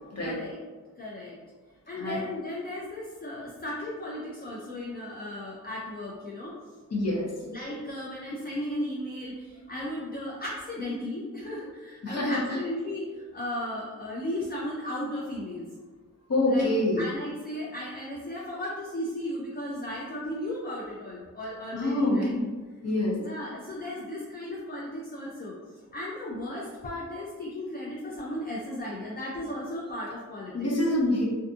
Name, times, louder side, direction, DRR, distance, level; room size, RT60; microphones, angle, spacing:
voice 1, 0.2-0.6 1.0-1.4 1.9-6.6 7.5-15.6 16.5-22.3 23.2-30.7, left 1 dB, 30° left, -4 dB, 0.4 m, -35 dB
voice 2, 6.9-7.3 12.0-12.4 16.3-17.0 21.7-22.5 22.8-23.2 30.5-31.3, left 1 dB, 55° left, -3 dB, 0.7 m, -25 dB
2.5 x 2.5 x 2.3 m, 1.4 s
wide cardioid pair, 95°, 31 cm